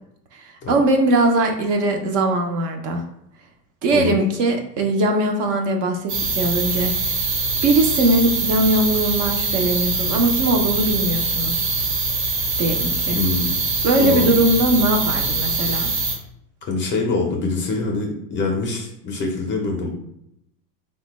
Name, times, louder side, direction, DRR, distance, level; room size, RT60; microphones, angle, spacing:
voice 1, 0.3-3.0 3.8-7.2 7.6-11.7 12.6-13.2 13.8-15.9, right 1 dB, 40° right, 3 dB, 0.5 m, -20 dB
sound 1, 6.1-16.2, right 3 dB, 85° right, 1.1 m, -23 dB
voice 2, 13.1-13.6 14.0-14.4 16.7-19.9, left 3 dB, 25° left, 1 dB, 0.5 m, -24 dB
3.3 x 2.2 x 3.0 m, 0.76 s
hypercardioid pair, 110°, 48 cm